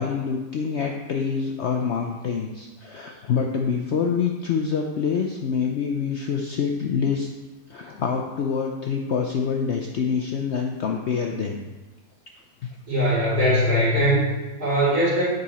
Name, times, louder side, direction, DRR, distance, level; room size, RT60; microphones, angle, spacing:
voice 1, 0.0-7.3 7.7-11.6 12.6-12.7, left 6 dB, 65° left, 2 dB, 0.7 m, -26 dB
voice 2, 12.9-15.2, equal, 70° right, -8 dB, 3.2 m, -21 dB
8.1 x 5.1 x 4.2 m, 1.2 s
omnidirectional pair, 1.7 m